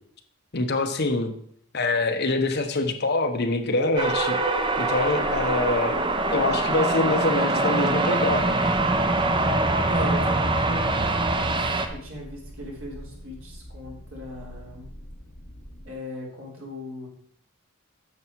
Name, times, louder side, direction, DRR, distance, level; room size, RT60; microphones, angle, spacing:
voice 1, 0.5-1.3 1.7-4.4 4.8-6.0 6.3-8.6, left 2 dB, 50° left, 6 dB, 1.0 m, -25 dB
sound 1, 4.0-11.9, right 2 dB, 20° right, 0.7 m, -23 dB
sound 2, 8.3-15.9, equal, 70° left, 2.4 m, -44 dB
voice 2, 9.9-14.9 15.8-17.1, left 1 dB, 65° right, -3 dB, 3.6 m, -38 dB
9.5 x 6.9 x 4.6 m, 0.64 s
head